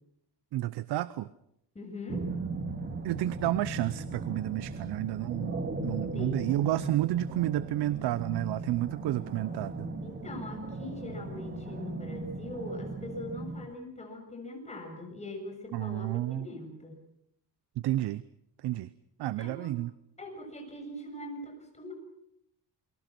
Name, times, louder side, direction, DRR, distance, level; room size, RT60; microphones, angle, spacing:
voice 1, 0.5-1.3 3.0-5.6 5.8-9.9 15.7-16.5 17.8-18.2 18.6-18.9 19.2-19.9, right 15 dB, 75° right, 16 dB, 0.8 m, -30 dB
voice 2, 1.8-2.3 6.0-6.4 10.0-17.0 19.4-19.8 20.2-21.9, left 2 dB, 15° left, 3 dB, 7.0 m, -41 dB
sound 1, 2.1-13.7, right 3 dB, 25° right, 2.5 m, -38 dB
28.5 x 24.0 x 6.0 m, 0.77 s
cardioid pair, 145°, 40 cm